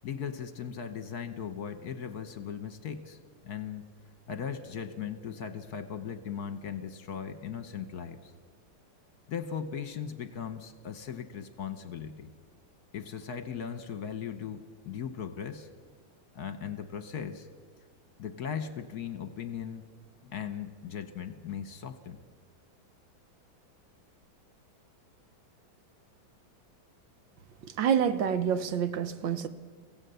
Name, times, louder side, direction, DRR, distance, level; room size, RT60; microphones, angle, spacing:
voice 1, 0.0-3.2 3.4-3.9 4.3-8.3 9.3-12.3 12.9-15.7 16.3-17.5 18.2-19.9 20.2-22.2, left 7 dB, 60° left, 1.4 m, -38 dB
voice 2, 27.8-29.5, right 8 dB, 70° right, 1.6 m, -27 dB
23.5 x 16.0 x 6.8 m
omnidirectional pair, 2.1 m